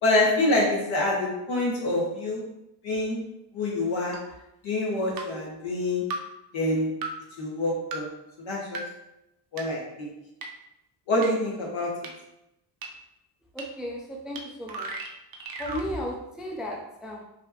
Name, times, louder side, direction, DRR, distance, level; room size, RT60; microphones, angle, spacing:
voice 1, 0.0-2.4 2.8-3.2 3.5-4.2 4.6-6.1 6.5-7.0 7.4-8.1 8.4-8.8 9.5-10.1 11.1-12.1, left 2 dB, 80° left, -4 dB, 1.5 m, -26 dB
sound 1, 4.1-4.2 5.2-5.3 6.1-6.2 7.0-7.1 7.9-8.0 8.7-8.8 9.6-9.7 10.4-10.5 11.2-11.3 12.0-12.1 12.8-12.9 13.6-13.7 14.4-14.5 14.7-15.9, right 3 dB, 50° right, 0.7 m, -34 dB
voice 2, 13.5-14.9 15.6-17.2, equal, ahead, -1 dB, 0.4 m, -35 dB
4.9 x 2.9 x 2.8 m, 0.88 s
wide cardioid pair, 155°, 45 cm